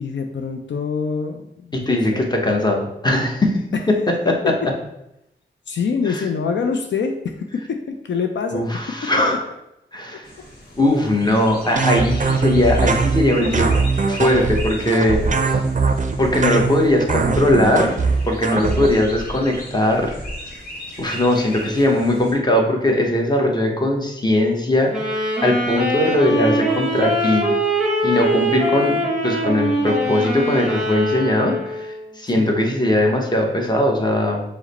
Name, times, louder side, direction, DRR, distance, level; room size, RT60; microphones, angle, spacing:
voice 1, 0.0-2.3 3.7-3.8 4.4-4.5 5.7-8.6 32.3-32.6, left 5 dB, 75° left, 4 dB, 0.4 m, -25 dB
voice 2, 1.7-3.5 4.3-4.4 6.1-6.2 8.5-9.4 9.9-10.3 10.8-13.7 14.1-15.6 16.2-17.9 18.2-20.1 21.0-27.5 28.0-29.0 29.2-34.4, left 1 dB, 20° left, 1 dB, 0.9 m, -19 dB
sound 1, 10.2-22.3, equal, 50° left, 1.3 m, -37 dB
sound 2, 11.8-18.9, right 4 dB, 40° right, 0.5 m, -21 dB
Wind instrument woodwind instrument, 24.9-32.1, right 1 dB, 5° right, 1.2 m, -22 dB
4.8 x 2.1 x 4.1 m, 0.85 s
cardioid pair, 55°, 19 cm